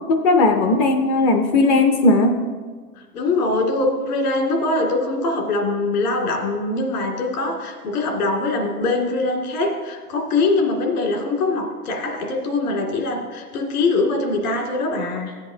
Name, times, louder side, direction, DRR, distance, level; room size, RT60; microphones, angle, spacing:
voice 1, 0.1-2.3, left 2 dB, 25° left, 6 dB, 0.4 m, -17 dB
voice 2, 3.1-15.3, left 2 dB, 75° left, 1 dB, 2.3 m, -22 dB
14.0 x 8.1 x 2.7 m, 1.5 s
hypercardioid pair, 125°, 46 cm